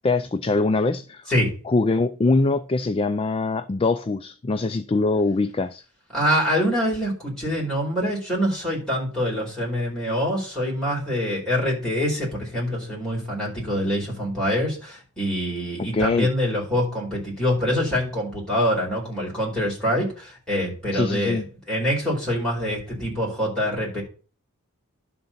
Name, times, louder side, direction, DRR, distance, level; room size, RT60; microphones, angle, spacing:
voice 1, 0.0-1.3 1.7-5.8 15.8-16.3 20.9-21.4, left 3 dB, 25° left, 0.3 m, -23 dB
voice 2, 6.1-21.4 21.7-24.0, equal, 5° left, 4.6 m, -25 dB
11.0 x 3.9 x 7.3 m
head